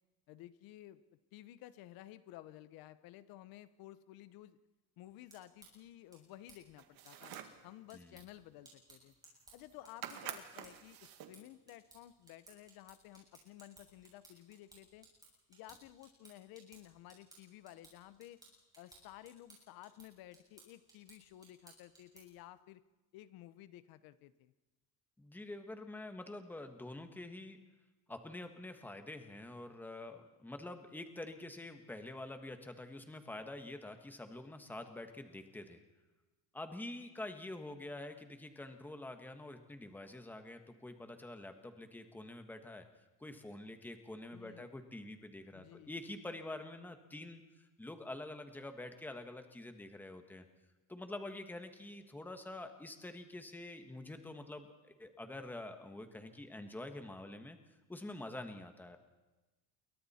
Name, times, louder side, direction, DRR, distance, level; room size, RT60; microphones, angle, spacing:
voice 1, 0.3-1.0 1.3-4.6 5.0-7.3 7.6-9.1 9.5-15.1 15.5-18.4 18.8-22.8 23.1-24.5 44.3-44.7 45.5-45.9, left 14 dB, 70° left, 14 dB, 0.9 m, -54 dB
sound 1, 5.1-22.5, right 2 dB, 10° right, 7.1 m, -63 dB
sound 2, 6.8-7.6 9.1-9.2 9.4-9.7 10.0-11.4, right 11 dB, 65° right, 1.9 m, -47 dB
voice 2, 25.2-27.6 28.1-35.8 36.5-42.9 43.2-50.4 50.9-57.6 57.9-59.0, left 2 dB, 5° left, 6 dB, 1.4 m, -47 dB
28.5 x 23.0 x 4.3 m, 1.1 s
cardioid pair, 175°, 37 cm